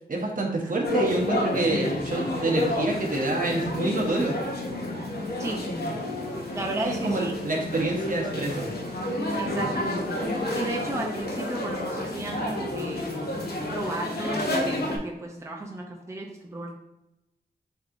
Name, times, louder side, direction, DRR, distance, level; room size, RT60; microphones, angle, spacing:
voice 1, 0.1-4.3 6.8-8.6, right 2 dB, 60° right, -1 dB, 1.1 m, -27 dB
sound 1, 0.8-15.0, left 1 dB, 80° left, 0.9 m, -30 dB
voice 2, 6.5-7.3 9.4-10.2 10.5-13.1 13.7-16.7, right 2 dB, 15° right, -1 dB, 0.6 m, -34 dB
6.9 x 2.9 x 2.6 m, 0.94 s
wide cardioid pair, 85°, 16 cm